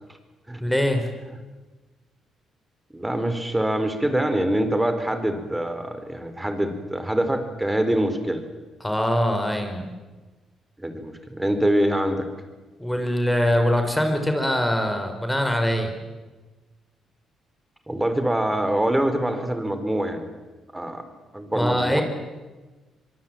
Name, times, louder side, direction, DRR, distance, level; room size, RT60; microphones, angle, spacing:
voice 1, 0.6-1.1 8.8-9.9 12.8-15.9 21.5-22.0, equal, 5° left, 6 dB, 4.3 m, -23 dB
voice 2, 2.9-8.4 10.8-12.3 17.9-20.3 20.7-21.0 21.3-22.0, right 1 dB, 10° right, 9 dB, 4.3 m, -24 dB
24.5 x 22.5 x 9.1 m, 1.2 s
cardioid pair, 90°, 0 cm